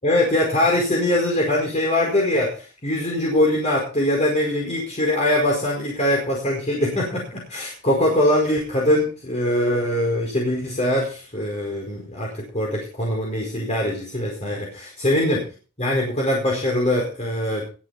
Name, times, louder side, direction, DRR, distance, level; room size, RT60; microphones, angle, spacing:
voice 1, 0.0-15.4 15.8-17.6, left 1 dB, 35° left, -2 dB, 4.9 m, -22 dB
21.0 x 8.4 x 4.3 m, 0.36 s
head